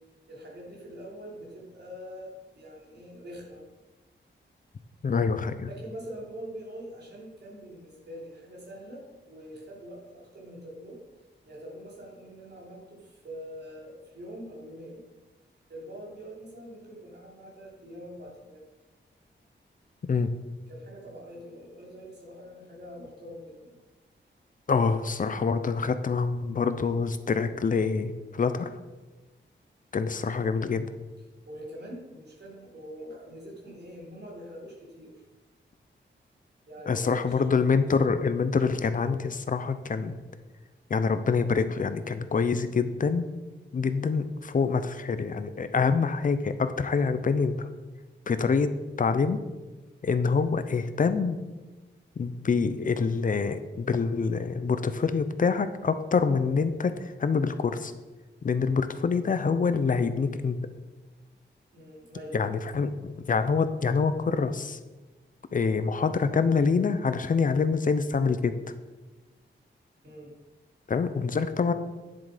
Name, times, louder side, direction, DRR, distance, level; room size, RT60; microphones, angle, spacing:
voice 1, 0.3-3.6 5.7-11.0 11.4-15.0 15.7-18.6 20.7-23.8 31.5-35.2 36.7-37.4 61.7-62.4 70.0-70.3, equal, 60° right, -3 dB, 3.3 m, -44 dB
voice 2, 5.0-5.7 20.0-20.3 24.7-28.7 29.9-30.9 36.9-40.2 40.9-43.3 43.7-47.7 48.3-49.5 50.0-51.4 52.2-57.9 58.4-60.6 62.3-64.8 65.5-68.5 70.9-71.7, left 5 dB, 45° left, 11 dB, 0.6 m, -26 dB
9.7 x 7.5 x 5.1 m, 1.2 s
wide cardioid pair, 180°, 20 cm